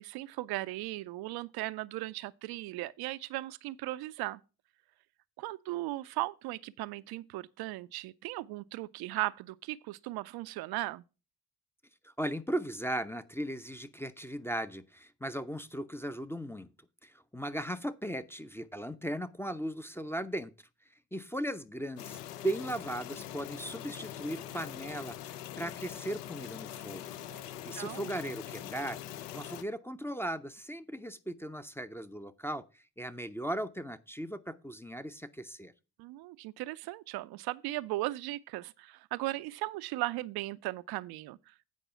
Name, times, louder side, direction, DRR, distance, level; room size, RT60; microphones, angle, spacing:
voice 1, 0.0-4.4 5.4-11.0 27.3-27.4 27.7-28.1 36.0-41.7, right 18 dB, 55° right, 0.5 m, -37 dB
voice 2, 12.0-16.7 17.0-20.5 21.1-27.1 27.4-29.0 29.3-35.7, right 1 dB, 5° left, 0.5 m, -37 dB
sound 1, 22.0-29.6, left 11 dB, 80° left, 0.7 m, -43 dB
8.3 x 5.3 x 5.6 m
figure-of-eight pair, 40°, 47 cm